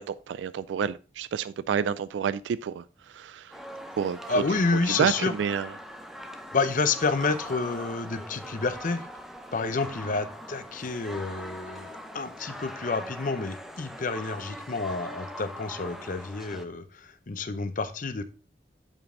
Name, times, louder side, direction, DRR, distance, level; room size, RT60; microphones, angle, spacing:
voice 1, 0.0-2.8 3.1-3.5 4.0-4.2 4.9-5.7, right 7 dB, 90° right, 0.3 m, -29 dB
sound 1, 3.5-16.6, equal, ahead, 0.6 m, -41 dB
voice 2, 4.3-5.4 6.5-9.1 9.5-18.2, left 3 dB, 50° left, 0.6 m, -29 dB
7.2 x 5.3 x 3.7 m
head